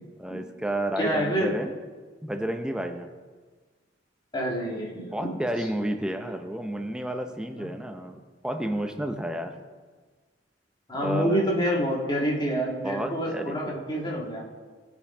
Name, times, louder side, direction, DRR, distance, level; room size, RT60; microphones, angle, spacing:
voice 1, 0.2-1.7 2.2-3.1 5.1-9.7 11.0-11.4 12.8-13.8, right 1 dB, 5° right, 5 dB, 0.7 m, -31 dB
voice 2, 1.0-1.5 4.3-5.3 7.6-7.7 10.9-14.4, equal, 25° left, -3 dB, 2.1 m, -27 dB
16.0 x 5.5 x 4.9 m, 1.4 s
head